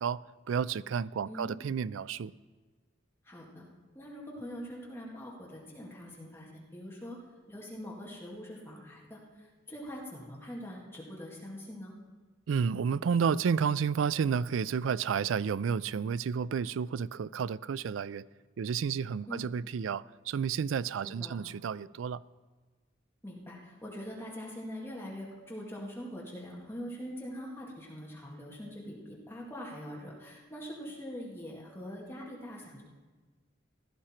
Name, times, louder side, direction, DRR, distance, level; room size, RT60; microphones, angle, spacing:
voice 1, 0.0-2.3 12.5-18.2 18.6-22.2, right 6 dB, 80° right, 0.4 m, -31 dB
voice 2, 1.3-1.6 3.2-3.6 3.9-7.2 7.5-11.9 19.3-19.5 21.0-21.5 23.2-32.8, equal, 10° left, 2.1 m, -43 dB
16.0 x 13.5 x 4.4 m
head